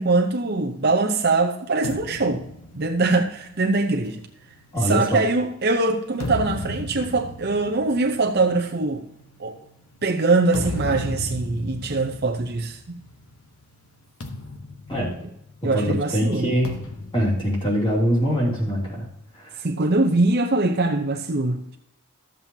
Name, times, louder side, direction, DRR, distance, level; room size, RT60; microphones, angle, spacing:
voice 1, 0.0-2.4 2.7-4.2 4.8-9.0 9.4-9.6 10.0-13.0 15.2-15.3 15.6-16.5 19.6-21.8, right 3 dB, 45° right, 0.7 m, -22 dB
sound 1, 1.8-5.4 5.9-13.4 13.6-13.9 14.2-15.8 16.6-18.4, left 1 dB, 75° left, 1.0 m, -35 dB
voice 2, 4.7-5.2 14.9-15.1 15.7-16.7 17.1-18.8, equal, 25° left, 2.8 m, -22 dB
13.5 x 7.5 x 2.8 m
head